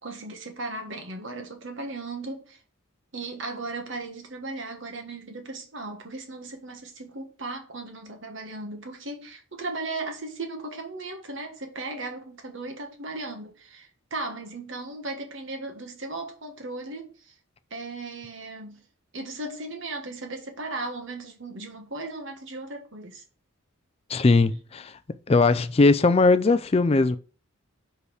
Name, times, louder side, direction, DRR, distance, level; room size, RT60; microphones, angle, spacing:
voice 1, 0.0-2.6 3.1-17.3 17.7-18.8 19.1-23.2, right 2 dB, 60° right, 1.5 m, -36 dB
voice 2, 24.1-25.0 25.3-27.2, left 3 dB, 30° left, 0.3 m, -19 dB
5.4 x 4.8 x 6.3 m
head